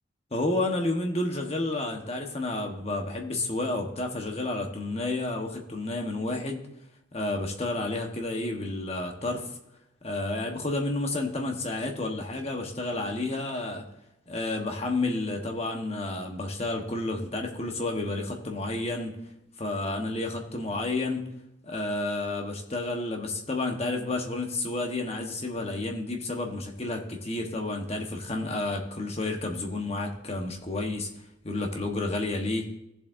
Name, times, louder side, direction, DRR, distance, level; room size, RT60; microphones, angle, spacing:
voice 1, 0.3-6.6 7.1-9.5 10.0-13.8 14.3-19.1 19.6-21.2 21.6-31.1 31.4-32.7, left 2 dB, 30° left, 2 dB, 1.1 m, -30 dB
15.5 x 7.3 x 2.6 m, 0.85 s
head